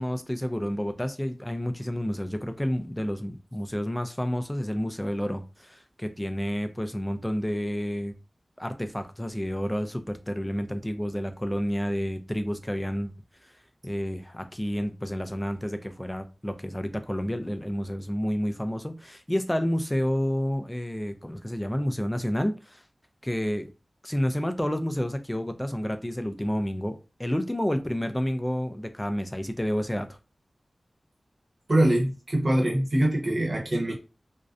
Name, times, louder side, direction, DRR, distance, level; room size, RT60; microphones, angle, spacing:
voice 1, 0.0-8.1 8.6-13.1 13.8-22.8 23.2-23.7 24.0-26.9 27.2-30.1, equal, 10° left, 0.3 m, -30 dB
voice 2, 31.7-33.9, right 1 dB, 50° right, 0.8 m, -23 dB
2.5 x 2.1 x 2.4 m
wide cardioid pair, 85°, 0 cm